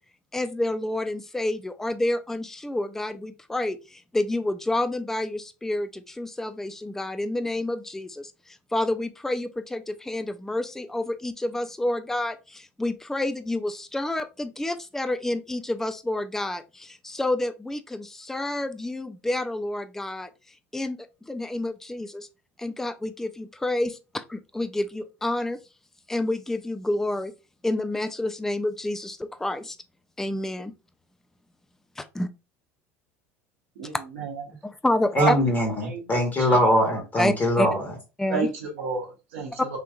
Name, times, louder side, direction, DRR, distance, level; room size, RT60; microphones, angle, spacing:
voice 1, 0.3-3.8 4.1-8.2 8.7-12.3 12.8-16.6 16.9-20.3 20.7-21.0 21.3-22.3 22.6-24.0 24.3-25.6 26.1-27.3 27.6-29.7 30.2-30.7 32.2-32.3 34.8-35.3 37.2-37.7 38.2-38.5, left 1 dB, 5° left, 0.3 m, -28 dB
voice 2, 33.8-34.3 35.2-35.4 35.8-36.6 38.3-39.8, right 5 dB, 80° right, 0.8 m, -30 dB
voice 3, 35.1-37.9, equal, 25° left, 1.1 m, -22 dB
3.6 x 2.7 x 2.3 m
hypercardioid pair, 80°, 7 cm